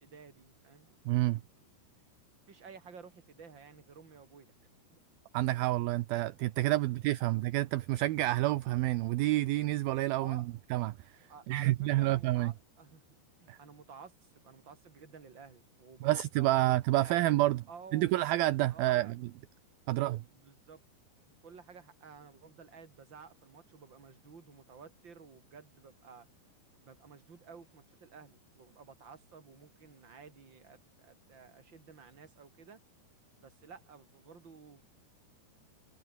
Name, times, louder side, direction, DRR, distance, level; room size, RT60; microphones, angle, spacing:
voice 1, 0.0-1.0 2.5-4.6 4.9-5.0 6.8-6.9 10.2-10.5 11.3-13.0 13.4-17.2 17.7-18.2 18.7-19.1 19.9-20.8 21.4-26.3 26.8-32.8 33.4-35.1, right 5 dB, 30° right, 3.8 m, -53 dB
voice 2, 1.1-1.4 5.3-10.4 10.7-11.0 11.5-12.5 13.5-13.6 16.0-17.6 17.9-19.2 19.9-20.2, right 17 dB, 75° right, 2.4 m, -28 dB
omnidirectional pair, 4.8 m